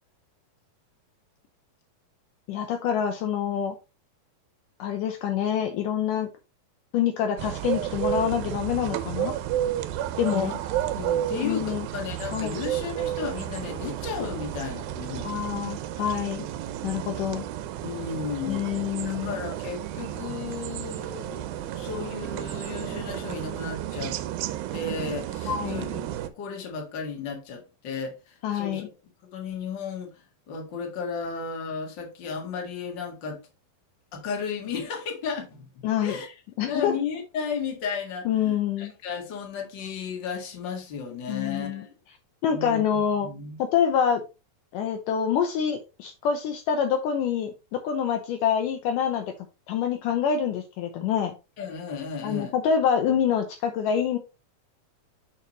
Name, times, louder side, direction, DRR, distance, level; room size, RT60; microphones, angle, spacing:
voice 1, 2.5-3.8 4.8-6.3 6.9-9.3 10.2-10.5 11.4-11.9 12.3-12.6 15.2-16.5 16.8-17.5 18.5-19.4 25.5-25.9 28.4-28.9 35.8-36.1 36.6-36.9 38.3-38.9 41.3-41.8 42.4-43.3 43.6-44.2 44.7-49.3 49.7-51.3 52.2-54.2, left 8 dB, 75° left, 2.2 m, -26 dB
sound 1, 7.4-26.3, right 12 dB, 85° right, 2.5 m, -32 dB
voice 2, 10.9-15.4 17.8-18.7 19.0-24.2 24.7-28.9 29.3-33.4 34.1-35.7 36.0-36.3 36.7-41.9 42.5-43.6 51.6-52.5, left 5 dB, 40° left, 1.9 m, -34 dB
6.9 x 6.6 x 3.0 m
omnidirectional pair, 4.2 m